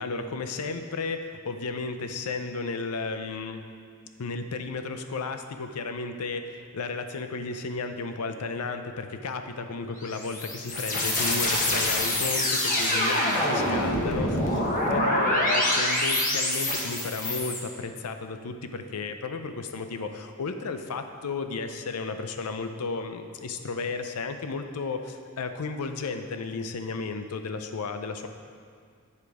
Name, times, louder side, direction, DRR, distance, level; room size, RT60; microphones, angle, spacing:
voice 1, 0.0-3.6 4.2-14.6 14.9-28.3, left 4 dB, 90° left, 8 dB, 0.5 m, -33 dB
sound 1, 10.0-17.6, left 1 dB, 35° left, 1.2 m, -26 dB
8.2 x 5.1 x 4.8 m, 2.2 s
head